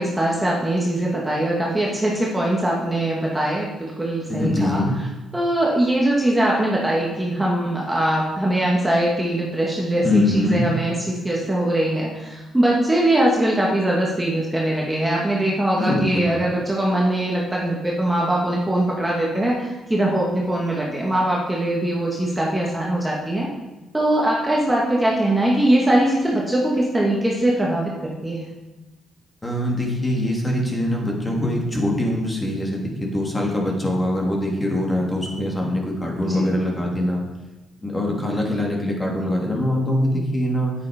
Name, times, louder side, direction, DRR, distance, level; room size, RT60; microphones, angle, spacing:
voice 1, 0.0-4.8 5.3-23.5 23.9-28.5 36.3-36.5, right 1 dB, 10° right, -3 dB, 1.9 m, -21 dB
voice 2, 4.3-4.9 10.0-10.7 15.8-16.3 29.4-37.2 37.8-40.7, left 1 dB, 15° left, -1 dB, 2.8 m, -23 dB
8.8 x 8.8 x 5.1 m, 1.1 s
cardioid pair, 90°, 0 cm